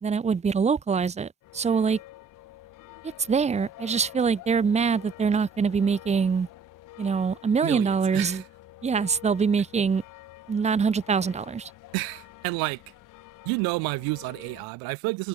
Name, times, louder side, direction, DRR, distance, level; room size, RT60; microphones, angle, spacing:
voice 1, 0.0-2.0 3.3-6.5 7.0-8.4 8.8-10.0 10.5-11.7, right 5 dB, 20° right, 1.7 m, -24 dB
sound 1, 1.4-14.7, left 17 dB, 60° left, 4.9 m, -48 dB
voice 2, 7.6-8.4 11.9-12.8 13.4-15.3, right 28 dB, 75° right, 1.3 m, -30 dB
cardioid pair, 150°, 36 cm